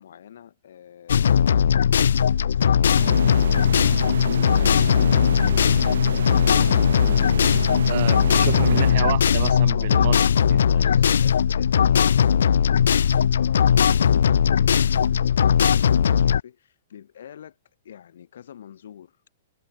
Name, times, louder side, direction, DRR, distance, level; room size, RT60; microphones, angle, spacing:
voice 1, 0.0-8.1 9.6-10.0 10.6-17.6 17.8-19.2, left 9 dB, 70° left, 3.3 m, -46 dB
sound 1, 1.1-16.4, left 8 dB, 90° left, 0.3 m, -19 dB
sound 2, 2.9-9.5, right 8 dB, 85° right, 0.3 m, -32 dB
voice 2, 7.9-10.2 10.5-10.9, right 15 dB, 50° right, 1.2 m, -29 dB
hypercardioid pair, 160°, 0 cm